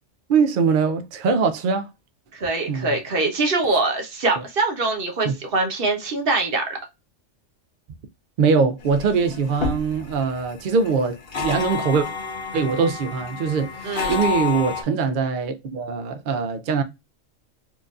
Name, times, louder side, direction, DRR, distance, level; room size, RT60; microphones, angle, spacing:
voice 1, 0.3-1.9 2.7-2.9 3.7-3.8 5.2-5.3 8.4-12.1 12.5-16.8, right 5 dB, 65° right, 0.5 m, -22 dB
voice 2, 2.3-6.8 13.8-14.3, right 3 dB, 50° right, 1.1 m, -23 dB
sound 1, 8.8-14.8, left 6 dB, 50° left, 1.1 m, -30 dB
4.5 x 2.5 x 2.3 m
omnidirectional pair, 1.3 m